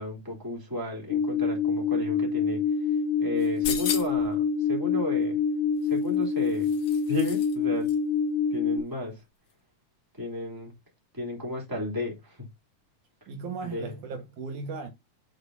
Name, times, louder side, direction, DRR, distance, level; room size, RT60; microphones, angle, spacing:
voice 1, 0.0-2.6 3.2-5.4 5.8-6.7 7.1-7.9 8.5-9.2 10.1-10.7 11.1-12.5 13.6-14.0, left 2 dB, 5° right, 2.9 m, -33 dB
sound 1, 1.1-8.8, left 5 dB, 85° left, 2.3 m, -26 dB
sound 2, 3.4-4.3 5.8-7.6 7.8-8.0, left 8 dB, 60° left, 1.7 m, -35 dB
voice 2, 13.3-14.9, right 4 dB, 75° right, 2.8 m, -36 dB
7.8 x 6.5 x 2.7 m
omnidirectional pair, 3.6 m